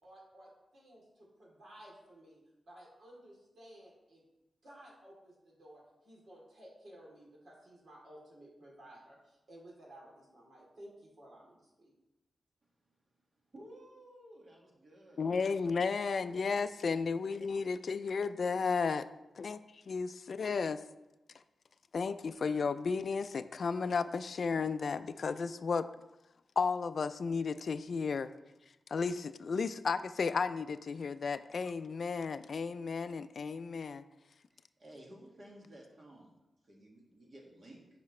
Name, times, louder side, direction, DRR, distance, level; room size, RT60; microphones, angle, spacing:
voice 1, 0.0-2.4 2.7-4.2 4.6-12.0, right 1 dB, 60° right, -3 dB, 2.9 m, -55 dB
voice 2, 13.5-15.3 34.5-37.9, right 1 dB, 40° right, -2 dB, 1.8 m, -54 dB
voice 3, 15.2-19.0 19.4-19.6 19.9-20.8 21.3-21.4 21.9-25.9 26.6-28.3 28.9-34.0, left 5 dB, 55° left, 12 dB, 0.3 m, -33 dB
10.5 x 6.6 x 3.2 m, 0.97 s
wide cardioid pair, 150°, 0 cm